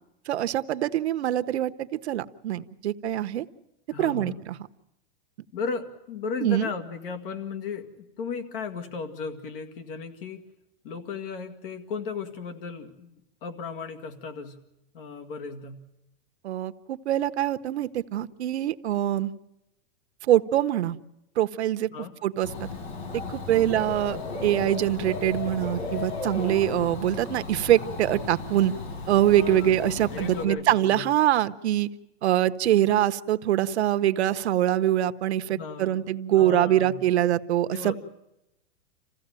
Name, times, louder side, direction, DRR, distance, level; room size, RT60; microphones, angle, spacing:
voice 1, 0.3-3.5 4.0-4.6 6.4-6.7 16.4-19.3 20.3-21.0 21.4-21.9 22.2-22.7 23.1-28.7 29.1-31.9 32.2-37.9, right 12 dB, 80° right, 11 dB, 1.0 m, -24 dB
voice 2, 3.9-4.4 5.5-10.4 10.8-14.6 14.9-15.8 21.9-22.1 23.5-23.8 29.3-31.1 35.5-36.0 36.3-37.0 37.7-38.0, left 5 dB, 55° left, 8 dB, 2.1 m, -35 dB
Dog / Bird, 22.4-30.4, left 3 dB, 80° left, 5.2 m, -35 dB
27.5 x 16.0 x 8.9 m, 0.89 s
supercardioid pair, 165°, 32 cm